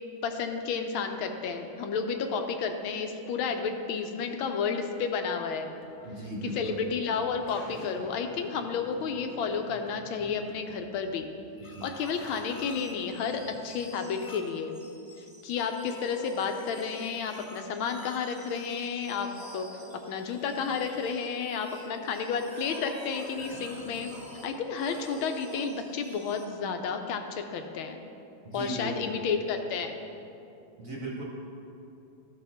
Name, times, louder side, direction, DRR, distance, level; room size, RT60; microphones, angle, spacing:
voice 1, 0.2-5.7 6.4-11.3 11.8-14.8 15.4-19.7 20.1-24.1 24.4-28.0 28.5-30.0, left 5 dB, 75° left, 5 dB, 1.4 m, -31 dB
sound 1, 5.8-13.6, left 1 dB, 50° left, 1.4 m, -51 dB
voice 2, 6.0-6.8 11.6-11.9 28.4-29.2 30.8-31.2, right 1 dB, 55° right, -2 dB, 1.0 m, -37 dB
sound 2, 11.6-26.5, left 1 dB, 15° left, 0.9 m, -48 dB
13.0 x 4.3 x 5.6 m, 2.8 s
omnidirectional pair, 2.3 m